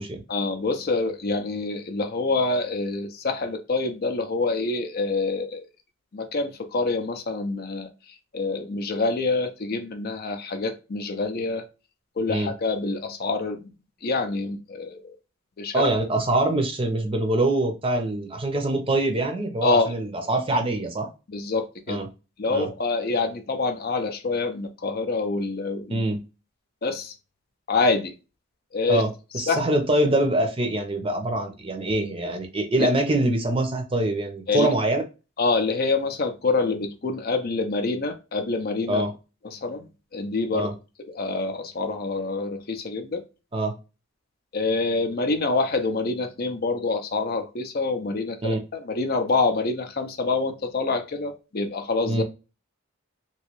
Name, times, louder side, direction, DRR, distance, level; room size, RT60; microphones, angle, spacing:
voice 1, 0.3-5.7 6.1-11.7 12.2-13.7 14.0-15.1 15.6-15.9 19.6-20.0 21.3-22.0 22.4-26.0 26.8-27.1 27.7-28.1 28.7-29.0 29.3-29.7 32.8-32.9 34.5-34.7 35.4-39.0 39.4-40.7 41.1-43.2 44.5-52.2, left 3 dB, 45° left, 0.5 m, -26 dB
voice 2, 15.7-21.1 21.9-22.1 22.5-22.7 25.9-26.2 28.9-29.1 29.3-35.0 38.9-39.1 40.5-40.7 43.5-43.7 48.4-48.6 52.1-52.2, right 1 dB, 25° right, 0.6 m, -24 dB
3.0 x 2.7 x 2.9 m
head